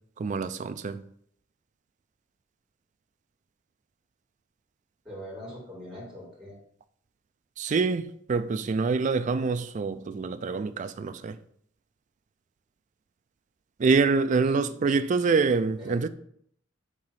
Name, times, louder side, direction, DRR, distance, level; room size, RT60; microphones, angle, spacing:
voice 1, 0.2-1.0 7.6-11.4 13.8-16.1, right 4 dB, 40° right, 0.4 m, -26 dB
voice 2, 5.0-6.6 14.3-15.0 15.8-16.1, equal, 5° right, 2.8 m, -43 dB
4.8 x 3.8 x 5.6 m
head